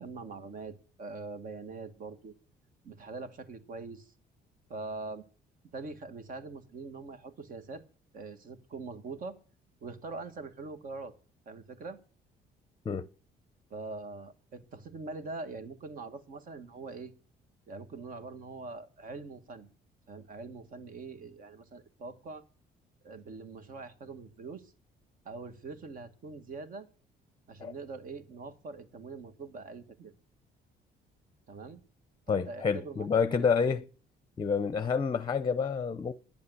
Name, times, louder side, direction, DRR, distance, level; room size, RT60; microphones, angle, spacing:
voice 1, 0.0-2.3 2.8-4.1 4.7-5.2 5.7-7.8 8.1-9.4 9.8-11.1 11.4-12.0 13.7-17.1 17.7-19.7 20.1-22.4 23.0-24.7 25.2-26.9 27.5-30.1 31.5-31.8 32.3-33.5, right 3 dB, 55° right, 1.7 m, -43 dB
voice 2, 32.3-33.8 34.4-36.1, left 6 dB, 25° left, 0.7 m, -28 dB
10.5 x 8.7 x 9.5 m
cardioid pair, 130°, 17 cm